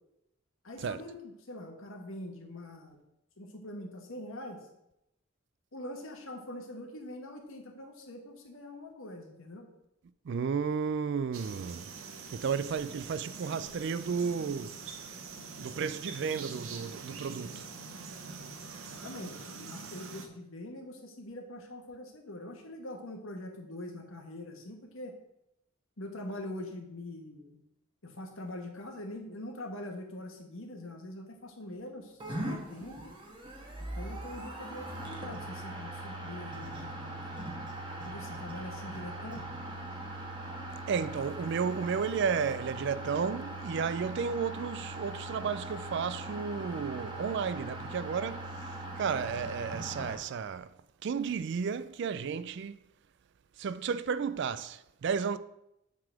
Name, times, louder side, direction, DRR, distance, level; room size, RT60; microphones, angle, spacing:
voice 1, 0.6-3.0 3.4-4.6 5.7-9.7 18.8-25.1 26.0-27.6 28.0-33.1 33.8-37.4 38.0-39.4, left 1 dB, 70° left, 1.4 m, -43 dB
voice 2, 10.3-11.8 12.3-14.7 15.6-17.6 40.9-50.7 51.0-52.8 53.6-55.4, right 6 dB, 55° right, 0.3 m, -33 dB
sound 1, 11.3-20.3, right 5 dB, 75° right, 0.9 m, -44 dB
sound 2, 32.2-50.2, right 1 dB, 25° right, 1.3 m, -40 dB
7.5 x 4.0 x 6.1 m
head